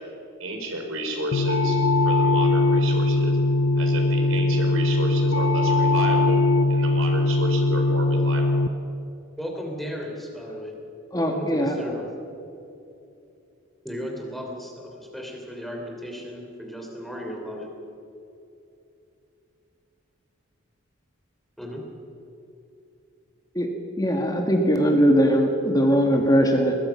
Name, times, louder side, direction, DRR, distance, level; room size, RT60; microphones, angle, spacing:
voice 1, 0.4-3.4 3.7-8.6, right 1 dB, 80° right, 3 dB, 4.1 m, -32 dB
sound 1, 1.3-8.7, left 2 dB, 80° left, 0.7 m, -21 dB
voice 2, 9.4-10.8 11.1-12.1 13.8-17.7 21.6-21.8, equal, ahead, 0 dB, 3.2 m, -35 dB
voice 3, 11.1-11.8 23.6-23.7 24.0-26.8, equal, 20° left, 3 dB, 2.0 m, -20 dB
21.0 x 21.0 x 5.9 m, 2.7 s
head